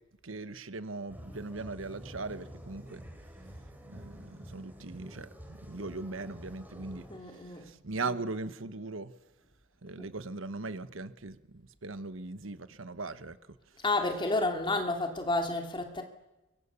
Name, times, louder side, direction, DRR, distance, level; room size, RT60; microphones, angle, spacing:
voice 1, 0.2-3.0 3.9-9.1 9.8-13.6, right 3 dB, 80° right, 1.2 m, -39 dB
sound 1, 1.1-7.2, equal, 10° right, 3.5 m, -48 dB
voice 2, 7.1-7.8 10.0-10.1 13.8-16.0, left 2 dB, 25° left, 2.9 m, -31 dB
28.0 x 23.5 x 7.1 m
head